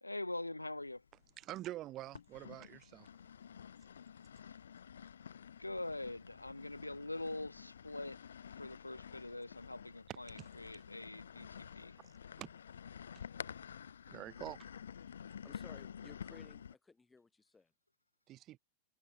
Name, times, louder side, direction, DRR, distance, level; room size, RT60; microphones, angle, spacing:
voice 1, 0.0-1.0 5.6-8.2 8.6-12.0, left 2 dB, 85° left, 0.9 m, -44 dB
sound 1, 0.9-1.6 2.1-16.8, left 8 dB, 70° left, 0.5 m, -51 dB
voice 2, 1.4-3.1 10.1-10.5 12.0-12.5 14.1-14.7 18.3-18.6, right 15 dB, 35° right, 3.9 m, -47 dB
voice 3, 15.1-17.7, left 3 dB, 10° left, 5.1 m, -60 dB
figure-of-eight pair, 90°, 0 cm